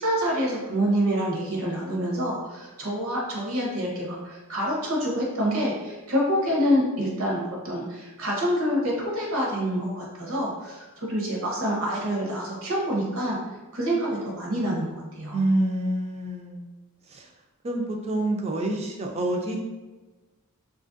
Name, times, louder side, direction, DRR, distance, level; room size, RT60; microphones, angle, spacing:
voice 1, 0.0-13.4 13.7-15.4, equal, 70° right, -3 dB, 0.8 m, -27 dB
voice 2, 15.3-16.7 17.1-17.3 17.6-19.6, right 1 dB, 30° right, 1 dB, 0.4 m, -27 dB
2.9 x 2.4 x 2.5 m, 1.2 s
head